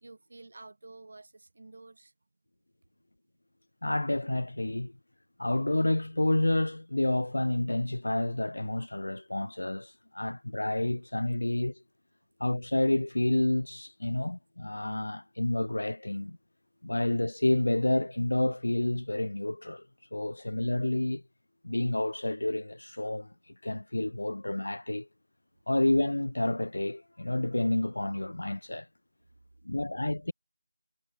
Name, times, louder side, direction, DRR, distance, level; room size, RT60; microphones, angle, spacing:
voice 1, 0.0-2.1, right 2 dB, 40° right, 5.4 m, -50 dB
voice 2, 3.8-4.9 5.4-11.8 12.4-16.4 16.8-19.9 20.1-21.2 21.6-23.3 23.6-25.1 25.7-28.9 29.6-30.3, left 1 dB, 70° left, 1.0 m, -29 dB
figure-of-eight pair, 175°, 0 cm